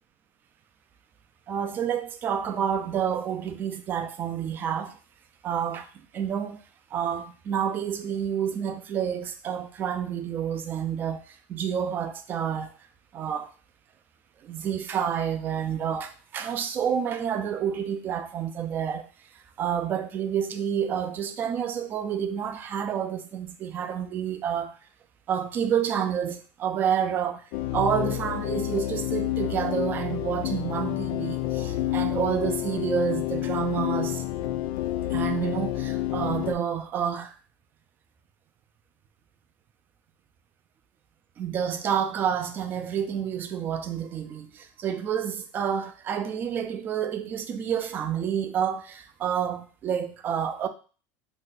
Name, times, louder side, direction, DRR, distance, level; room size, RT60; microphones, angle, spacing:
voice 1, 1.5-5.0 5.4-6.6 6.9-12.7 13.1-13.5 14.4-19.1 19.6-24.8 25.3-27.4 27.7-34.2 35.1-37.3 41.4-50.7, right 8 dB, 30° right, 0.3 m, -29 dB
sound 1, 27.5-36.5, left 14 dB, 60° left, 0.3 m, -29 dB
2.6 x 2.2 x 4.0 m
supercardioid pair, 145°, 7 cm